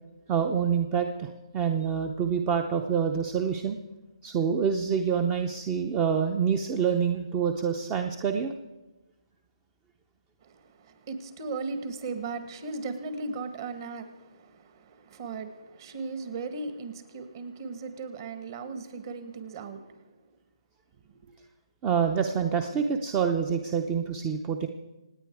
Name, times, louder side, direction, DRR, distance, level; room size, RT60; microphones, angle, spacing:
voice 1, 0.3-3.8 4.2-8.5 21.8-24.7, right 7 dB, 20° right, 0.7 m, -27 dB
voice 2, 10.4-20.2 20.9-21.3, right 4 dB, 40° right, 2.0 m, -37 dB
27.0 x 9.6 x 4.8 m
hypercardioid pair, 150°, 3 cm